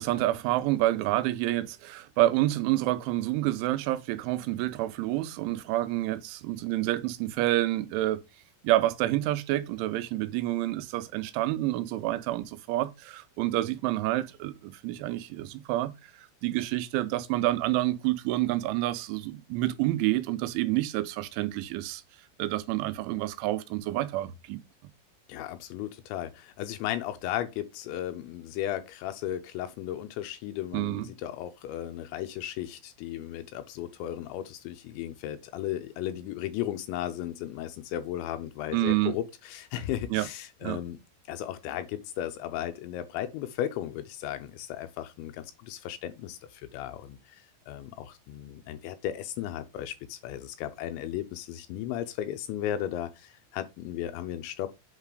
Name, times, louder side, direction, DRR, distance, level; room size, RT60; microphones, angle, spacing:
voice 1, 0.0-8.2 8.6-22.0 22.4-24.6 30.7-31.1 38.7-39.2 40.1-40.3 40.6-40.8, right 16 dB, 85° right, 2.9 m, -28 dB
voice 2, 25.3-41.0 41.3-54.7, left 12 dB, 85° left, 2.8 m, -35 dB
8.2 x 3.6 x 4.9 m
omnidirectional pair, 5.6 m